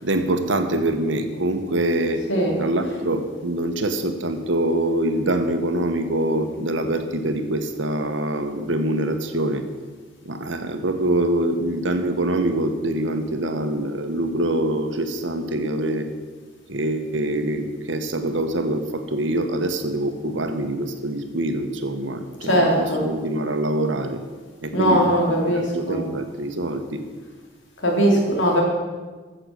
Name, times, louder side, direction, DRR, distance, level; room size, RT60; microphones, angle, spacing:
voice 1, 0.0-2.2 2.6-9.6 10.2-16.1 16.7-24.2 24.6-25.1 25.4-27.0, right 1 dB, 80° right, 7 dB, 1.2 m, -24 dB
voice 2, 22.4-23.0 24.7-26.0 27.8-28.6, equal, 80° left, -1 dB, 3.3 m, -20 dB
15.0 x 6.7 x 6.4 m, 1.4 s
head